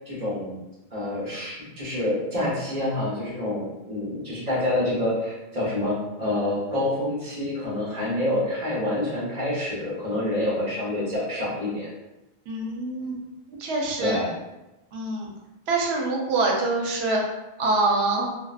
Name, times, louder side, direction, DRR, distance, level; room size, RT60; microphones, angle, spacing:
voice 1, 0.1-0.6 0.9-11.9 14.0-14.3, left 1 dB, 40° right, -7 dB, 0.9 m, -27 dB
voice 2, 12.5-13.2 13.5-14.2 14.9-15.3 15.7-17.2 17.6-18.3, right 2 dB, 85° right, -1 dB, 0.8 m, -25 dB
2.6 x 2.0 x 2.3 m, 0.99 s
omnidirectional pair, 1.1 m